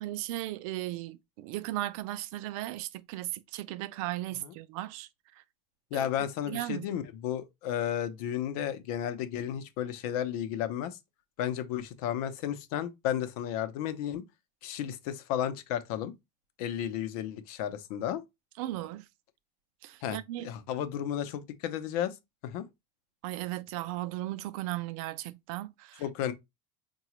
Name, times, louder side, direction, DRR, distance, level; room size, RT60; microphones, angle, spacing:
voice 1, 0.0-5.1 5.4-5.5 5.9-6.1 6.5-6.9 18.6-19.1 19.8-20.5 23.2-26.0, right 15 dB, 70° right, 0.4 m, -36 dB
voice 2, 5.9-11.0 11.4-14.2 14.6-16.1 16.6-18.2 20.0-22.1 22.4-22.6 26.0-26.3, left 10 dB, 90° left, 0.6 m, -33 dB
4.7 x 2.3 x 2.9 m
cardioid pair, 180°, 18 cm